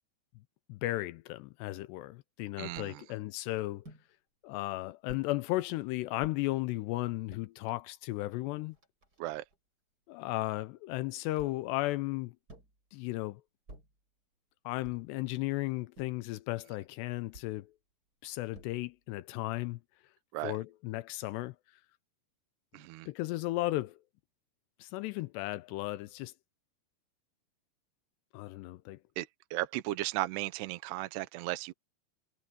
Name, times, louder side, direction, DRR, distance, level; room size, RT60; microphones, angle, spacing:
voice 1, 0.7-3.8 4.4-8.8 10.1-12.3 12.9-13.4 14.7-17.7 18.2-19.8 20.4-21.6 23.1-24.0 24.8-26.3 28.3-29.0, left 18 dB, 85° left, 2.5 m, -35 dB
voice 2, 2.6-3.0 9.2-9.4 20.3-20.6 22.7-23.1 29.2-31.7, right 17 dB, 75° right, 2.6 m, -36 dB
sound 1, 2.8-3.0 3.8-4.1 5.1-5.3 6.2-6.4 7.1-7.5 8.2-8.3 8.5-9.6 11.4-11.7 12.5-12.8 13.7-14.0 14.8-15.2 16.0-16.3 17.3-17.6 18.5-19.0, right 1 dB, 20° right, 7.5 m, -53 dB
omnidirectional pair, 5.4 m